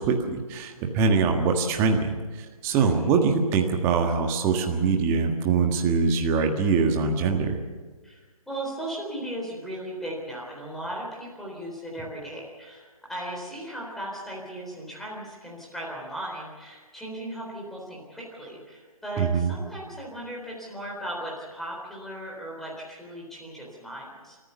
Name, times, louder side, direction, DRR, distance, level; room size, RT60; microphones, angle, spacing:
voice 1, 0.0-7.6 19.2-19.5, right 5 dB, 15° right, 4 dB, 1.6 m, -23 dB
voice 2, 2.7-3.1 8.0-24.4, right 1 dB, ahead, -3 dB, 4.0 m, -37 dB
30.0 x 14.5 x 6.8 m, 1.4 s
figure-of-eight pair, 145°, 18 cm